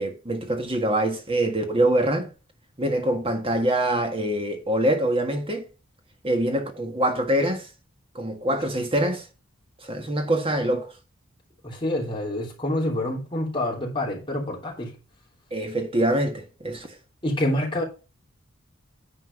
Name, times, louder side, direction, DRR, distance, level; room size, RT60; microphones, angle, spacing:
voice 1, 0.0-2.3 2.8-5.7 6.2-7.7 8.1-9.2 9.8-10.9 15.5-16.9, right 1 dB, 30° right, 1.6 m, -24 dB
voice 2, 11.6-14.9 17.2-17.8, left 1 dB, 25° left, 3.1 m, -27 dB
9.8 x 4.4 x 5.4 m
head